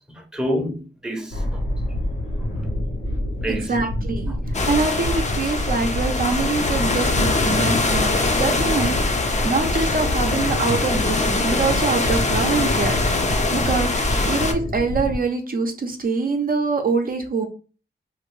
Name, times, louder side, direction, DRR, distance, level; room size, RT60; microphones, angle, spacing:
voice 1, 0.1-1.6 3.4-3.7 14.1-14.4, equal, 5° right, 0.7 m, -28 dB
sound 1, 1.3-15.2, left 1 dB, 90° left, 1.0 m, -27 dB
voice 2, 3.5-4.3 4.7-13.0 13.5-17.5, right 4 dB, 50° right, 0.5 m, -24 dB
sound 2, 4.5-14.5, left 3 dB, 40° left, 0.5 m, -23 dB
2.6 x 2.5 x 3.1 m
cardioid pair, 75°, 19 cm